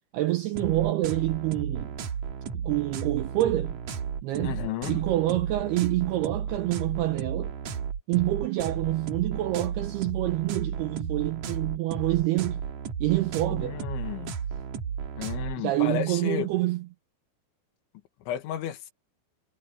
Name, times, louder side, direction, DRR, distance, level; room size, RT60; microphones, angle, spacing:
voice 1, 0.1-1.9 2.5-3.8 4.2-4.6 4.9-7.5 8.1-12.6 13.0-13.8 15.6-16.8, right 16 dB, 90° right, 2.3 m, -27 dB
sound 1, 0.5-15.6, right 7 dB, 60° right, 2.1 m, -34 dB
voice 2, 4.4-5.0 13.5-14.4 15.2-16.5 18.3-18.9, left 11 dB, 75° left, 3.7 m, -33 dB
omnidirectional pair, 5.6 m